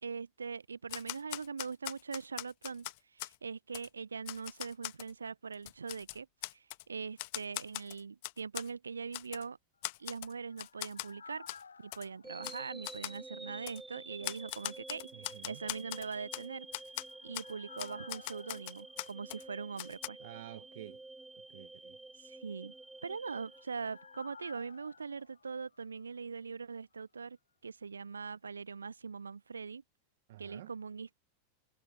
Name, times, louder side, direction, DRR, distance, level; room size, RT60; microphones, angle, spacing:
voice 1, 0.0-6.3 6.5-9.6 10.0-11.5 11.8-16.7 17.2-20.2 22.2-22.7 23.0-27.4 27.6-29.8 30.4-31.1, right 5 dB, 75° right, 0.6 m, -42 dB
Typewriter, 0.9-3.4 3.7-3.9 4.3-5.1 5.5-6.8 7.2-8.7 9.1-9.4 9.8-10.3 10.6-11.1 11.5-11.6 11.9-12.1 12.4-12.6 12.8-13.2 13.7-13.8 14.2-16.4 16.7-17.0 17.3-17.5 17.8-19.4 19.8-20.1, left 24 dB, 50° left, 1.4 m, -41 dB
sound 1, 9.9-13.8 14.0-14.1 16.5-20.2 20.5-20.6 22.8-26.7 27.0-27.1, left 5 dB, 75° left, 7.7 m, -57 dB
sound 2, 12.2-24.4, right 2 dB, 5° right, 2.2 m, -50 dB
voice 2, 15.1-15.6 20.2-21.0 21.5-22.0 30.3-30.7, right 15 dB, 55° right, 1.2 m, -50 dB
figure-of-eight pair, 90°, 0 cm